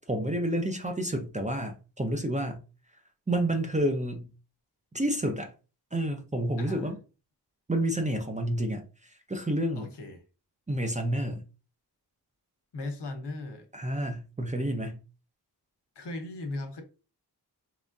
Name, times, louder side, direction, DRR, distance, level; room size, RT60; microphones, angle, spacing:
voice 1, 0.0-2.6 3.3-4.3 4.9-5.5 5.9-7.0 7.7-9.9 10.7-11.4 13.7-15.0, right 1 dB, 20° right, 0.5 m, -29 dB
voice 2, 6.6-6.9 9.8-10.2 12.7-13.7 15.9-16.8, left 2 dB, 75° left, 1.0 m, -37 dB
3.4 x 3.1 x 2.6 m
wide cardioid pair, 110°, 42 cm